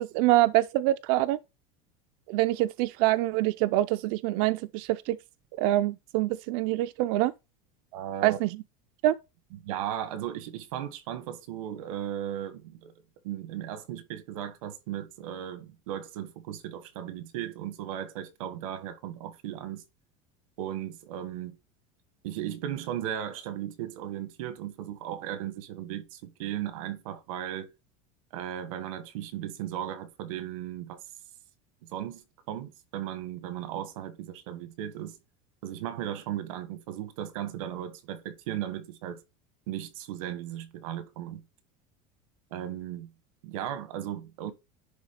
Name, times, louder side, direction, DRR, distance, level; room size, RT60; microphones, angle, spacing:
voice 1, 0.0-1.4 2.3-5.2 5.6-7.3 8.2-8.6 9.0-9.1, right 16 dB, 50° right, 0.4 m, -25 dB
voice 2, 7.9-8.4 9.5-12.9 13.2-19.8 20.6-21.6 22.2-27.7 28.3-31.0 31.9-35.2 35.6-39.2 39.7-41.4 42.5-43.1 43.4-44.5, right 11 dB, 90° right, 1.4 m, -36 dB
10.5 x 3.6 x 5.1 m
cardioid pair, 175°, 17 cm